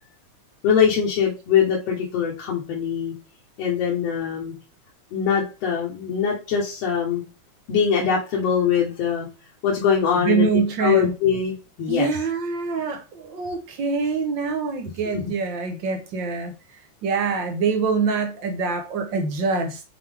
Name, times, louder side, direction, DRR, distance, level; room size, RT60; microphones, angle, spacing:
voice 1, 0.6-3.1 3.6-4.5 5.1-7.2 7.7-9.3 9.6-10.5 10.8-12.1 15.1-15.3, left 7 dB, 60° left, 2.2 m, -22 dB
voice 2, 10.2-11.1 11.9-16.5 17.0-19.8, right 4 dB, 65° right, 1.2 m, -24 dB
7.3 x 4.6 x 3.4 m
omnidirectional pair, 3.4 m